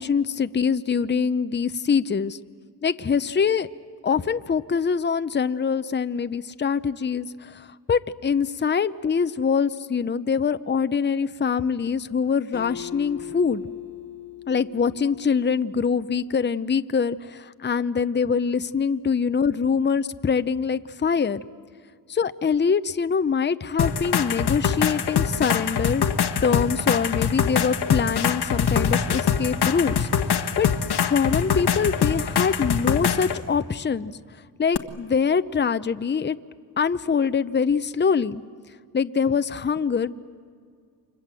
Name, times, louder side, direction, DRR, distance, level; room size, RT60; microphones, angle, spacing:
voice 1, 0.0-2.4 2.8-3.7 4.0-13.6 14.5-21.4 22.1-26.0 26.4-30.7 31.0-34.1 34.6-36.4 36.8-38.4 38.9-40.1, left 6 dB, 25° left, 12 dB, 0.7 m, -24 dB
Acoustic guitar, 12.5-15.9, left 11 dB, 85° left, 1.7 m, -39 dB
sound 1, 23.8-33.4 34.7-34.8, left 7 dB, 70° left, 1.4 m, -23 dB
29.5 x 24.5 x 7.6 m, 2.1 s
cardioid pair, 65°, 41 cm